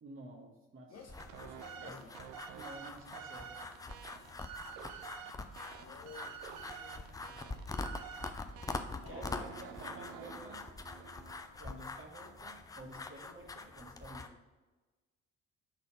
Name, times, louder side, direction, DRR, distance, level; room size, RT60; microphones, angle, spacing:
voice 1, 0.0-1.0 1.8-2.0 2.5-3.5 9.1-10.7 11.6-14.3, right 1 dB, 30° right, 0 dB, 1.1 m, -51 dB
voice 2, 0.9-2.1 5.7-7.9 9.0-9.6, left 5 dB, 40° left, 5 dB, 0.9 m, -54 dB
sound 1, 1.0-11.5, right 8 dB, 60° right, 0.6 m, -49 dB
sound 2, 1.1-14.3, left 3 dB, 10° left, 0.3 m, -45 dB
5.6 x 4.0 x 5.4 m, 1.2 s
figure-of-eight pair, 45°, 39 cm